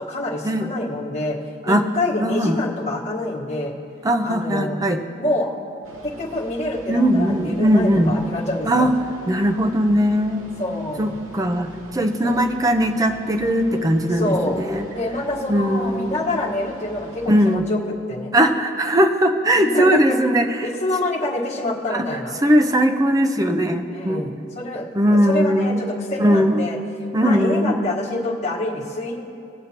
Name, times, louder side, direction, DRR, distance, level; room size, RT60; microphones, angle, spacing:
voice 1, 0.0-1.4 1.6-3.7 4.2-4.8 5.2-5.5 6.0-9.0 10.6-11.1 12.2-12.4 14.1-14.6 14.9-17.8 18.1-18.3 19.5-20.2 20.6-22.4 23.9-26.8 27.2-29.2, left 2 dB, 35° left, -5 dB, 1.4 m, -26 dB
voice 2, 2.2-2.6 4.0-5.0 6.9-8.1 8.7-8.9 9.3-10.5 11.0-14.9 15.5-16.2 17.3-17.6 18.3-20.7 21.9-22.1 22.4-24.2 24.9-25.8 26.2-26.7 27.1-27.8, equal, 15° right, 6 dB, 0.5 m, -19 dB
sound 1, 5.8-17.6, right 1 dB, 80° right, 1.2 m, -42 dB
20.0 x 7.9 x 2.9 m, 2.7 s
head